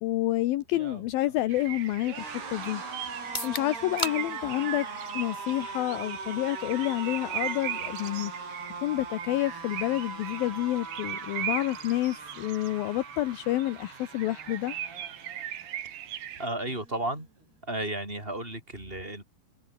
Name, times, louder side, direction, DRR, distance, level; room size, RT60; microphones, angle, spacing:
voice 1, 0.0-2.8 3.4-4.9 5.1-8.3 8.8-14.7, left 15 dB, 75° left, 2.7 m, -29 dB
sound 1, 0.6-15.8 16.2-16.4 16.6-17.4, right 4 dB, 85° right, 10.0 m, -41 dB
sound 2, 1.5-16.5, right 11 dB, 70° right, 3.4 m, -39 dB
sound 3, 3.2-17.0, left 1 dB, 10° left, 5.9 m, -45 dB
voice 2, 16.4-17.3 17.6-19.2, right 1 dB, 15° right, 7.6 m, -33 dB
omnidirectional pair, 4.5 m